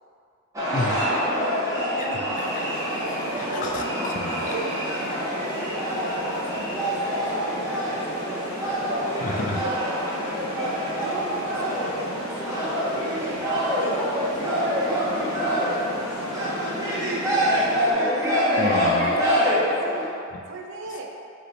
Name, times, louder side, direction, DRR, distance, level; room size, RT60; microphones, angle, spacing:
sound 1, 0.5-20.1, equal, 15° right, 0.9 m, -26 dB
voice 1, 0.7-1.0 1.9-2.3 2.5-2.7 3.3-4.6 9.2-9.6 18.6-19.3 20.3-20.4 20.9-21.0, left 3 dB, 40° left, 2 dB, 0.3 m, -31 dB
voice 2, 2.0-2.9 3.6-3.8 4.4-8.5 9.0-12.3 12.7-13.4 13.8-14.0 14.3-17.8 19.8-20.2 20.5-21.1, right 2 dB, 60° right, 1 dB, 0.5 m, -38 dB
sound 2, 2.4-17.9, equal, 80° left, 0.9 m, -37 dB
5.1 x 3.0 x 3.2 m, 2.4 s
head